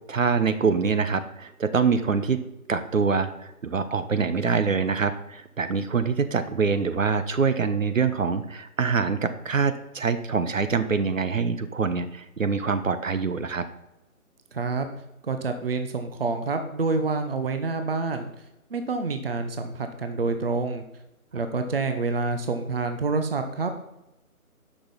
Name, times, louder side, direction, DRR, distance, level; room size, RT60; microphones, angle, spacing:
voice 1, 0.1-2.4 2.7-13.6, right 5 dB, 60° right, 11 dB, 1.1 m, -25 dB
voice 2, 14.5-14.9 15.2-18.3 18.7-20.8 21.3-23.8, right 3 dB, 40° right, 7 dB, 0.9 m, -27 dB
10.0 x 6.4 x 5.6 m, 0.90 s
figure-of-eight pair, 170°, 43 cm